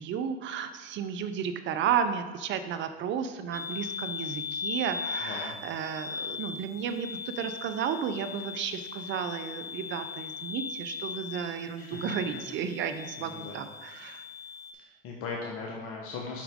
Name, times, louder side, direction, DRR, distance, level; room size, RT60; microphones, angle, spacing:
voice 1, 0.0-14.2, right 7 dB, 40° right, 10 dB, 0.6 m, -33 dB
sound 1, 3.5-14.7, left 5 dB, 10° left, 1.0 m, -39 dB
voice 2, 5.2-5.6 11.8-12.1 13.3-13.6 14.8-16.4, left 4 dB, 50° left, -1 dB, 1.2 m, -38 dB
7.3 x 5.9 x 3.6 m, 1.4 s
hypercardioid pair, 95°, 29 cm